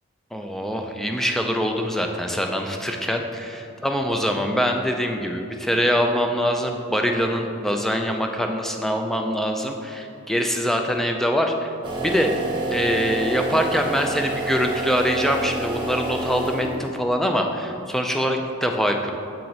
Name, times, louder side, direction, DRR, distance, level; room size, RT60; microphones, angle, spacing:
voice 1, 0.3-11.7 12.0-12.3 12.7-19.1, equal, ahead, 3 dB, 0.3 m, -24 dB
sound 1, 11.8-17.0, right 2 dB, 25° right, 1.0 m, -28 dB
7.5 x 4.4 x 4.0 m, 2.7 s
head